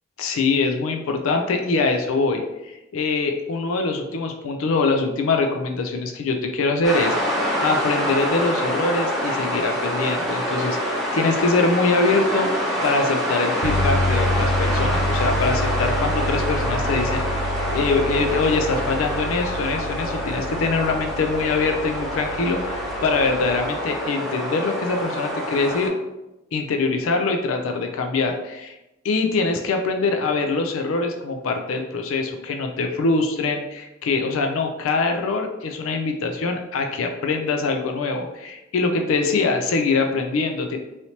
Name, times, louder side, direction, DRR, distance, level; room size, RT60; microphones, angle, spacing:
voice 1, 0.2-7.1 7.6-12.5 12.8-25.9 26.5-28.8 29.0-40.8, left 3 dB, 85° left, 4 dB, 0.4 m, -23 dB
sound 1, 6.8-25.9, equal, ahead, 0.6 m, -26 dB
sound 2, 13.6-23.8, left 1 dB, 90° right, 0.5 m, -28 dB
3.2 x 2.7 x 2.8 m, 0.95 s
head